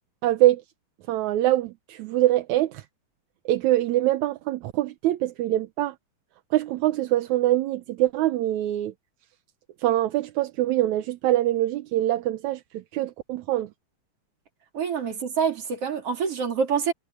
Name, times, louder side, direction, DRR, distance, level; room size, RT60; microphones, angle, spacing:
voice 1, 0.2-0.6 1.1-2.8 3.5-6.0 6.5-8.9 9.8-13.7, right 14 dB, 75° right, 2.0 m, -24 dB
voice 2, 14.7-16.9, right 6 dB, 45° right, 3.7 m, -26 dB
omnidirectional pair, 3.7 m